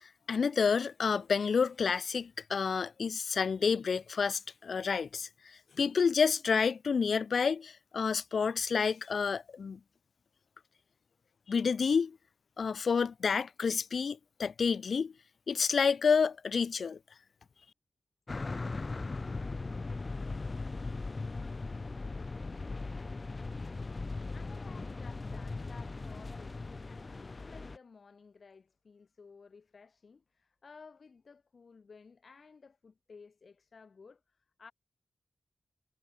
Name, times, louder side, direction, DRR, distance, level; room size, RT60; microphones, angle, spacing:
voice 1, 0.0-9.8 11.5-12.2 12.6-15.1 15.5-17.0, left 5 dB, 80° left, 0.5 m, -29 dB
sound 1, 18.3-27.8, left 3 dB, 35° left, 1.9 m, -39 dB
voice 2, 24.3-34.7, left 5 dB, 65° left, 6.8 m, -56 dB
wide cardioid pair, 130°, 0 cm